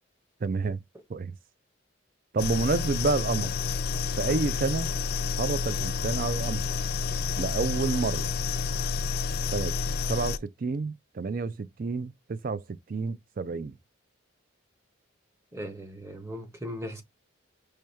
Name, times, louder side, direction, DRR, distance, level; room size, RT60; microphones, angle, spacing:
voice 1, 0.4-0.8 1.1-1.3 2.3-3.5 4.2-4.9 5.4-6.6 7.4-8.3 9.5-9.7 10.1-13.7, right 4 dB, 45° right, 0.4 m, -29 dB
sound 1, 2.4-10.4, left 5 dB, 50° left, 0.4 m, -29 dB
voice 2, 15.5-17.0, equal, 15° right, 0.9 m, -38 dB
4.9 x 2.2 x 4.3 m
head